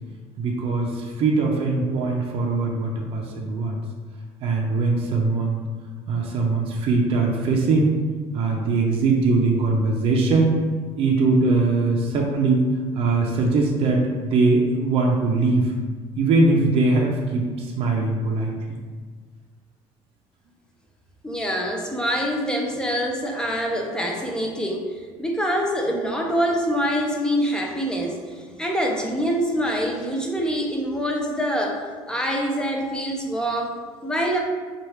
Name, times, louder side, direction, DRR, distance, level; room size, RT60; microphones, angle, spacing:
voice 1, 0.4-3.8 4.4-5.6 6.1-8.0 8.3-10.6 11.0-15.7 16.2-18.5, right 3 dB, 55° right, -1 dB, 0.6 m, -21 dB
voice 2, 21.2-24.9 25.2-28.2 28.6-34.4, equal, 5° left, 0 dB, 0.6 m, -25 dB
4.7 x 2.5 x 3.1 m, 1.5 s
cardioid pair, 105°, 11 cm